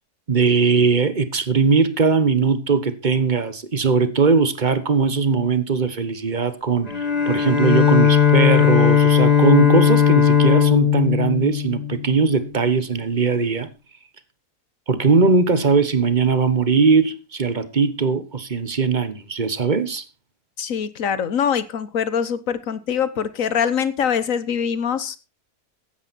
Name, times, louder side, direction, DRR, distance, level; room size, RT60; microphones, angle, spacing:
voice 1, 0.3-13.7 14.9-20.0, right 5 dB, 30° right, 1.3 m, -20 dB
Bowed string instrument, 6.9-12.4, left 8 dB, 30° left, 1.2 m, -17 dB
voice 2, 20.6-25.2, left 7 dB, 60° left, 1.4 m, -23 dB
15.0 x 10.5 x 4.2 m
omnidirectional pair, 1.7 m